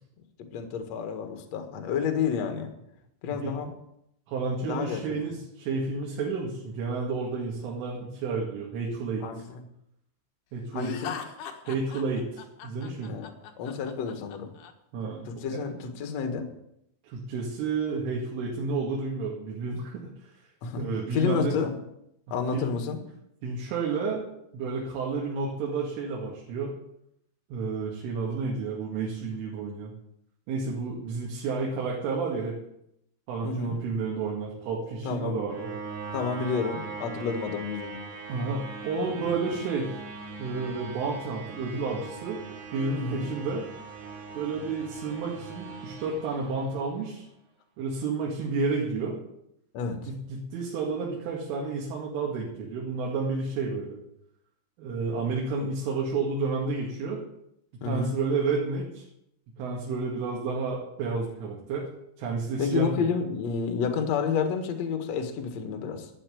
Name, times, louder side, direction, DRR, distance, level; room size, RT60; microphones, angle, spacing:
voice 1, 0.5-2.7 3.2-3.7 4.6-5.2 9.2-9.4 10.7-11.2 13.1-14.5 15.3-16.5 20.6-20.8 21.1-21.7 22.3-23.0 33.4-33.8 35.0-35.4 36.1-38.0 43.0-43.3 49.7-50.1 57.8-58.2 62.6-66.1, left 6 dB, 65° left, 6 dB, 1.7 m, -30 dB
voice 2, 4.3-9.2 10.5-11.1 11.7-13.2 14.9-15.6 17.1-20.0 20.8-21.6 22.5-22.7 23.4-24.2 24.5-26.7 27.5-29.9 30.5-32.5 33.3-35.7 38.3-39.9 40.4-42.4 42.7-43.7 44.3-47.3 47.8-49.2 50.1-54.0 54.8-57.2 57.8-59.0 59.6-61.9 62.2-62.9, right 4 dB, 80° right, -3 dB, 4.7 m, -31 dB
Laughter, 10.8-14.7, left 8 dB, 80° left, 1.8 m, -40 dB
sound 1, 34.2-47.2, right 4 dB, 60° right, 4.7 m, -41 dB
12.0 x 8.8 x 9.2 m, 0.77 s
omnidirectional pair, 5.6 m